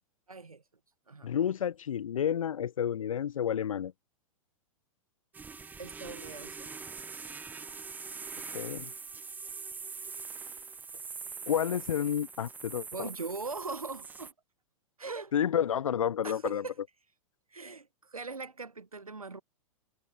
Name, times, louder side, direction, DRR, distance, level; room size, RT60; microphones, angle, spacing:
voice 1, 0.3-0.6 1.1-1.3 5.8-6.7 12.9-14.3 15.0-15.3 16.2-16.7 17.5-19.4, right 4 dB, 90° right, 1.1 m, -40 dB
voice 2, 1.2-3.9 8.5-8.9 11.5-13.1 15.3-16.6, left 9 dB, 70° left, 0.7 m, -30 dB
sound 1, 5.3-14.3, right 5 dB, 10° right, 0.5 m, -43 dB
figure-of-eight pair, 105°, 18 cm